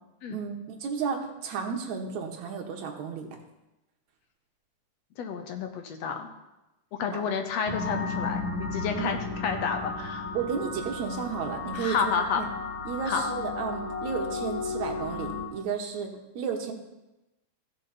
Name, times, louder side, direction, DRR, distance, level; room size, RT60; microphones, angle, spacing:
voice 1, 0.3-3.3 7.1-7.2 9.0-9.1 10.3-12.5 12.8-16.7, right 6 dB, 70° right, 2 dB, 2.3 m, -33 dB
voice 2, 5.2-6.3 7.0-10.3 11.7-12.4 13.1-13.3, left 6 dB, 65° left, 5 dB, 1.8 m, -30 dB
sound 1, 7.6-15.5, left 3 dB, 10° right, 3.0 m, -34 dB
15.5 x 6.5 x 4.1 m, 0.99 s
omnidirectional pair, 3.7 m